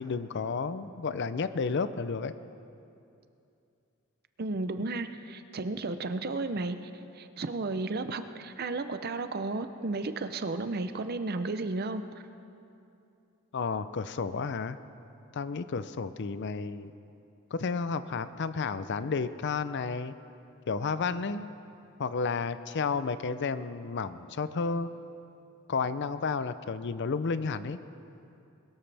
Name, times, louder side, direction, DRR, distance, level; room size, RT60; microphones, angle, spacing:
voice 1, 0.0-2.3 13.5-14.8 15.3-16.9 17.5-20.1 20.7-21.5 22.0-24.9 25.7-27.8, left 4 dB, 55° left, 13 dB, 0.5 m, -32 dB
voice 2, 4.4-12.0, right 3 dB, 45° right, 10 dB, 0.6 m, -33 dB
22.0 x 13.0 x 3.4 m, 2.7 s
head